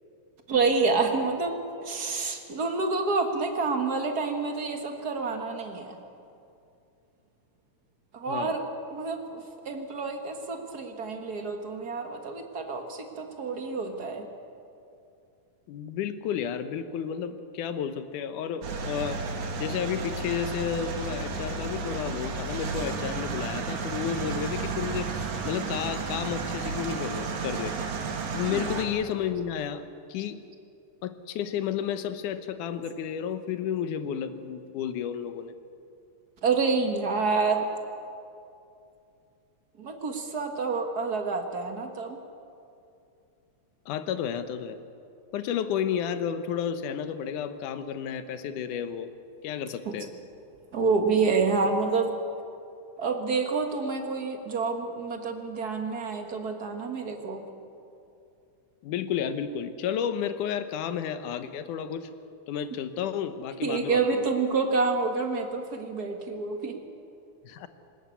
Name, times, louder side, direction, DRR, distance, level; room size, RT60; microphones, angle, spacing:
voice 1, 0.5-6.0 8.1-14.3 28.5-28.8 36.4-37.7 39.8-42.2 49.8-50.1 50.7-52.1 53.0-57.5 62.7-62.8 63.6-66.8, right 4 dB, 40° right, 4 dB, 1.4 m, -28 dB
voice 2, 15.7-19.2 19.6-27.8 28.3-30.4 31.0-35.5 43.9-44.8 45.3-49.1 49.4-50.1 58.8-62.1 62.5-64.3 67.4-67.7, left 8 dB, 75° left, 10 dB, 2.5 m, -32 dB
sound 1, 18.6-28.9, right 4 dB, 65° right, 3.2 m, -32 dB
20.0 x 19.5 x 8.4 m, 2.6 s
omnidirectional pair, 3.7 m